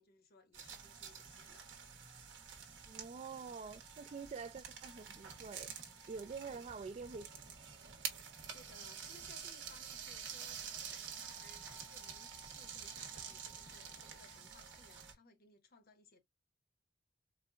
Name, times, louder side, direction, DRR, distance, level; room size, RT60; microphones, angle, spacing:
voice 1, 0.0-1.7 6.5-6.6 8.5-16.2, left 3 dB, 55° left, 0.9 m, -63 dB
sound 1, 0.5-15.1, right 7 dB, 65° right, 1.1 m, -48 dB
voice 2, 2.9-5.7 6.1-7.3, right 5 dB, 35° right, 0.4 m, -46 dB
4.3 x 2.2 x 2.3 m
head